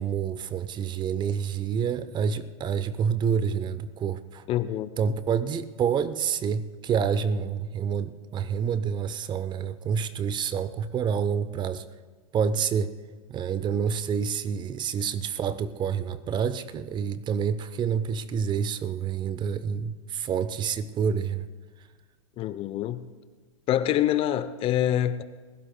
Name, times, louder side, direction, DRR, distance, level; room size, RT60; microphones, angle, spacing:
voice 1, 0.0-4.4 5.0-11.8 12.3-12.9 13.3-21.5, right 7 dB, 25° right, 0.7 m, -28 dB
voice 2, 4.5-5.2 22.4-23.1 23.7-25.2, left 12 dB, 35° left, 0.6 m, -26 dB
27.5 x 16.0 x 2.2 m
hypercardioid pair, 105°, 17 cm